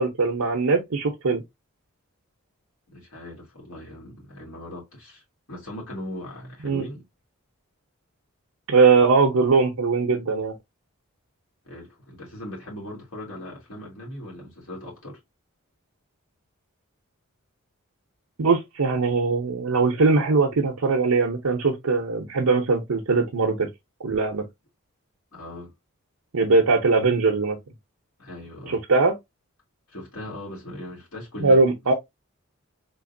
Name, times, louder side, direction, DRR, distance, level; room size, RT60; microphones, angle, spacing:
voice 1, 0.0-1.4 6.6-6.8 8.7-10.5 18.4-23.7 24.0-24.4 26.3-27.6 28.9-29.1 31.4-31.9, right 4 dB, 85° right, 0.8 m, -20 dB
voice 2, 2.9-5.2 5.5-7.0 11.6-15.2 25.3-25.7 28.2-28.8 29.9-31.6, left 1 dB, 70° left, 2.1 m, -39 dB
3.9 x 2.9 x 2.6 m
head